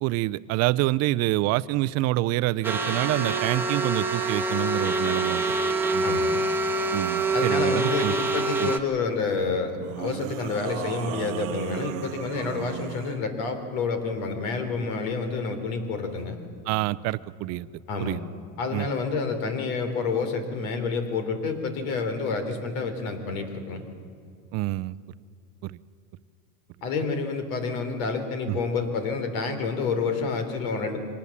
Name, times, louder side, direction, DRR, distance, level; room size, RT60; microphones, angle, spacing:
voice 1, 0.0-5.5 5.9-6.4 6.9-8.1 8.6-8.7 16.7-17.7 18.0-18.2 18.7-18.9 24.5-24.9 25.6-25.8 28.5-28.6, right 17 dB, 40° right, 17 dB, 0.5 m, -27 dB
sound 1, 2.6-8.8, right 3 dB, 5° right, 1.3 m, -25 dB
voice 2, 6.0-6.3 7.3-16.4 17.9-18.2 18.6-23.8 26.8-31.0, left 4 dB, 70° left, 8 dB, 3.7 m, -29 dB
sound 2, 7.2-7.7 9.8-13.2, right 14 dB, 65° right, 0.9 m, -36 dB
24.0 x 19.0 x 7.3 m, 2.4 s
supercardioid pair, 135°, 42 cm